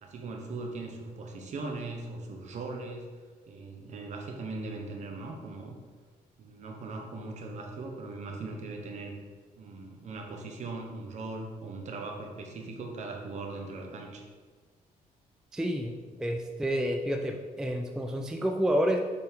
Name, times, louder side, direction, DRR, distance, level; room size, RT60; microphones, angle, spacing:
voice 1, 0.0-3.1 3.5-5.7 6.4-9.1 9.6-14.2, right 3 dB, 55° right, 2 dB, 1.0 m, -39 dB
voice 2, 15.5-19.0, equal, 5° right, 3 dB, 0.3 m, -29 dB
6.8 x 4.1 x 3.6 m, 1.5 s
cardioid pair, 135°, 15 cm